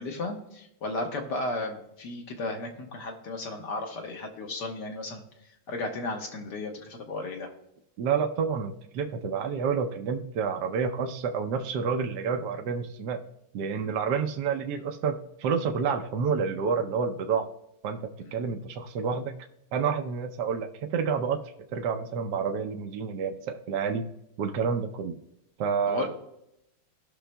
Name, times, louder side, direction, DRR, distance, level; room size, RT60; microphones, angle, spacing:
voice 1, 0.0-5.2 5.7-7.5 18.2-18.3 25.9-26.1, left 2 dB, 60° left, 2 dB, 1.7 m, -34 dB
voice 2, 8.0-13.2 13.5-17.5 17.8-18.0 18.3-19.4 19.7-21.4 21.7-24.1 24.4-25.2 25.6-26.1, right 6 dB, 65° right, 4 dB, 1.1 m, -29 dB
18.0 x 6.1 x 2.2 m, 0.84 s
omnidirectional pair, 2.2 m